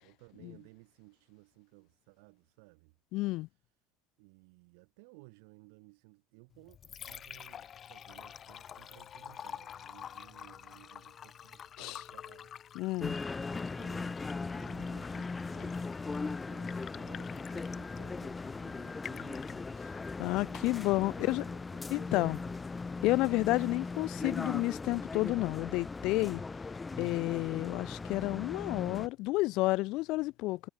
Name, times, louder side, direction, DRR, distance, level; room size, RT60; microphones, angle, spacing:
voice 1, 0.0-3.0 3.4-3.7 4.2-12.5 13.5-19.6 20.4-22.6, right 33 dB, 80° right, 4.8 m, -58 dB
voice 2, 3.1-3.5 11.8-12.0 12.7-13.2 20.2-21.4 21.9-22.4 23.0-26.4 27.0-30.6, left 20 dB, 60° left, 0.8 m, -31 dB
Liquid, 6.5-25.5, left 9 dB, 35° left, 1.0 m, -50 dB
sound 1, 13.0-29.1, left 4 dB, 15° left, 0.4 m, -39 dB
cardioid pair, 135°, 0 cm